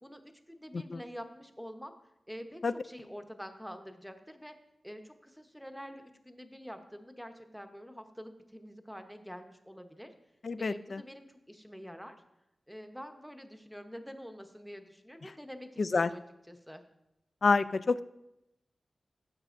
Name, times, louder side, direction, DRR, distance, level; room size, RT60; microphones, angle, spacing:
voice 1, 0.0-1.9 2.3-4.6 4.8-10.1 10.6-12.2 12.7-16.2 16.5-16.8, equal, ahead, 6 dB, 0.8 m, -46 dB
voice 2, 10.4-11.0 15.8-16.1 17.4-18.0, left 4 dB, 55° left, 15 dB, 0.3 m, -28 dB
15.5 x 7.4 x 2.5 m, 0.88 s
wide cardioid pair, 125°, 0 cm